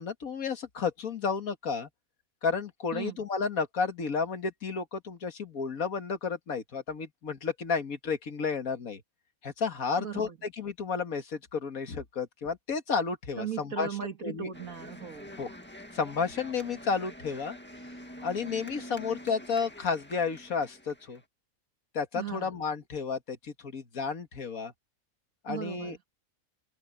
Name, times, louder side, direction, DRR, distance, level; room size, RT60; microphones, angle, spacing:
voice 1, 0.0-1.9 2.4-9.0 9.4-13.9 14.2-14.5 15.4-15.5 15.9-17.6 18.2-21.2 21.9-24.7 25.4-26.0, left 5 dB, 75° left, 2.1 m, -32 dB
voice 2, 10.0-10.4 13.4-15.4 22.1-22.5 25.5-26.0, right 8 dB, 70° right, 2.3 m, -37 dB
sound 1, 14.5-21.2, equal, 5° left, 1.9 m, -46 dB
open air
omnidirectional pair, 1.5 m